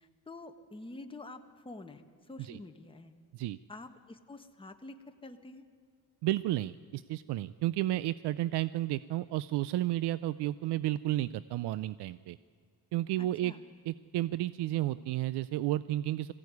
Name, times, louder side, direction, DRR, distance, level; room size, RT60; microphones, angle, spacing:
voice 1, 0.0-3.1 3.7-5.6 13.2-13.6, left 2 dB, 15° left, 5 dB, 1.4 m, -48 dB
voice 2, 6.2-12.4 12.9-13.5 13.9-16.3, right 14 dB, 90° right, 16 dB, 0.5 m, -32 dB
21.5 x 16.0 x 9.6 m, 2.2 s
cardioid pair, 110°, 39 cm